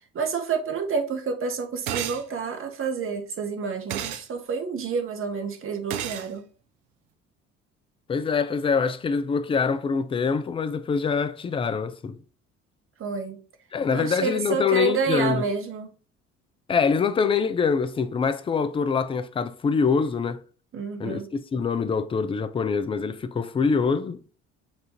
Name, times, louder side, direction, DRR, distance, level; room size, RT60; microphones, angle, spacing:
voice 1, 0.1-6.4 13.0-13.4 13.9-15.9 20.7-21.3, right 5 dB, 35° right, 0.9 m, -29 dB
sound 1, 1.9-2.2 3.9-4.3 5.9-6.3, right 10 dB, 65° right, 0.6 m, -31 dB
voice 2, 8.1-12.2 13.7-15.4 16.7-20.4 21.0-24.2, left 5 dB, 15° left, 0.4 m, -24 dB
7.1 x 2.5 x 2.8 m
figure-of-eight pair, 55°, 36 cm